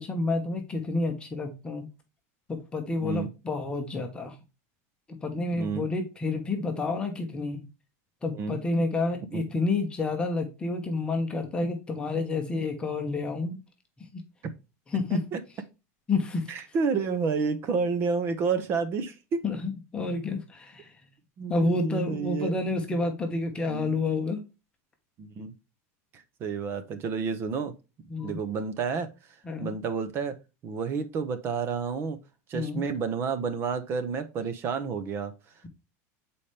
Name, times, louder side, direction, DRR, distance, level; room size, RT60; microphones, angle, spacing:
voice 1, 0.0-1.9 2.5-4.4 5.1-7.6 8.2-13.6 14.0-14.2 14.9-15.2 16.1-16.5 19.4-20.9 21.5-24.4 28.1-28.4 29.4-29.7 32.5-32.8, left 3 dB, 10° left, 4 dB, 0.9 m, -29 dB
voice 2, 5.5-5.9 8.3-8.6 9.3-9.4 15.1-15.4 16.5-19.4 21.4-22.6 23.7-24.0 25.2-25.5 26.1-27.7 28.2-29.1 29.6-30.3 30.6-32.2 32.5-35.3, right 5 dB, 30° right, 11 dB, 0.8 m, -30 dB
7.0 x 4.3 x 3.2 m, 0.28 s
supercardioid pair, 165°, 8 cm